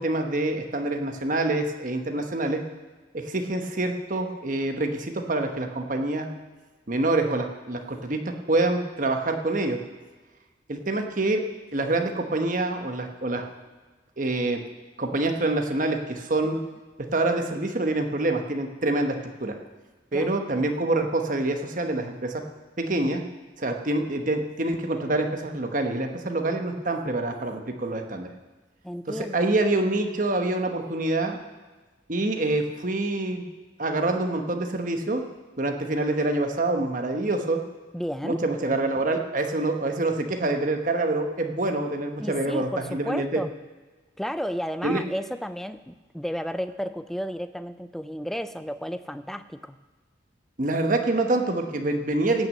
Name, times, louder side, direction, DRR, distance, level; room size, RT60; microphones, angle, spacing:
voice 1, 0.0-2.6 3.1-6.3 6.9-9.8 10.7-11.4 11.7-13.5 14.2-14.6 15.0-16.6 17.1-19.6 20.1-22.4 22.8-23.2 23.6-28.3 29.1-31.4 32.1-33.5 33.8-35.2 35.6-37.6 38.2-43.4 44.8-45.0 50.6-52.5, right 2 dB, 40° right, 5 dB, 1.2 m, -26 dB
voice 2, 28.8-29.5 37.9-38.4 42.2-43.5 44.2-49.8, equal, ahead, 11 dB, 0.4 m, -32 dB
17.0 x 6.2 x 7.7 m, 1.3 s
head